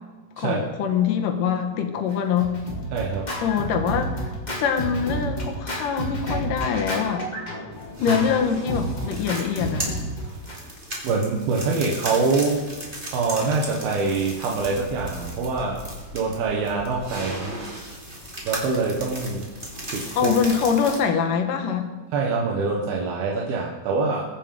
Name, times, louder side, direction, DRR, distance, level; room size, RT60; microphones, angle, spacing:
voice 1, 0.4-2.5 3.4-4.3 4.6-7.2 8.0-9.9 20.2-21.9, left 7 dB, 70° left, 5 dB, 2.4 m, -24 dB
Scratching (performance technique), 2.1-10.6, equal, 25° left, 0.9 m, -31 dB
voice 2, 2.9-3.3 8.1-8.2 11.0-12.6 13.1-15.8 16.1-17.6 18.5-19.5 19.9-20.3 22.1-24.2, right 4 dB, 75° right, -1 dB, 3.1 m, -25 dB
sound 1, 7.7-21.0, right 1 dB, 15° right, 2.2 m, -36 dB
22.0 x 7.4 x 5.2 m, 1.3 s
omnidirectional pair, 4.5 m